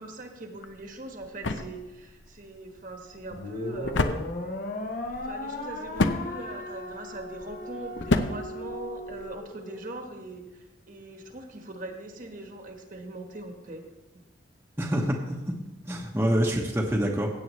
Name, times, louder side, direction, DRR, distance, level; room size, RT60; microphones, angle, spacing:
voice 1, 0.0-4.3 5.2-13.8 14.1-14.2, right 2 dB, 45° right, 4 dB, 1.3 m, -41 dB
sound 1, 0.6-9.4, left 3 dB, 70° left, 0.7 m, -32 dB
sound 2, 3.3-9.8, left 2 dB, 45° left, 0.9 m, -37 dB
voice 2, 14.8-15.4 15.8-17.3, equal, 10° right, -2 dB, 0.9 m, -26 dB
16.0 x 8.5 x 3.1 m, 1.0 s
head